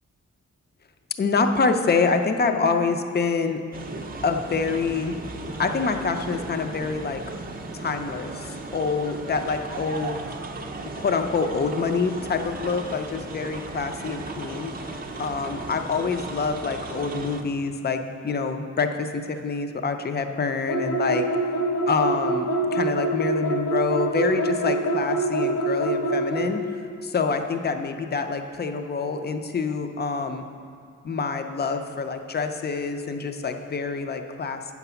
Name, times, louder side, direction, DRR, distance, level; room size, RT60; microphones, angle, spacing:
voice 1, 1.2-3.6 4.2-5.1 5.6-7.2 7.7-10.2 11.0-14.7 15.2-21.3 21.9-26.6 27.0-30.4 31.0-34.7, left 4 dB, 35° left, 7 dB, 0.5 m, -26 dB
sound 1, 3.7-17.4, right 2 dB, 30° right, 0.5 m, -36 dB
sound 2, 20.7-26.5, right 2 dB, 75° left, 1.3 m, -25 dB
8.4 x 5.9 x 6.8 m, 2.3 s
wide cardioid pair, 175°, 30 cm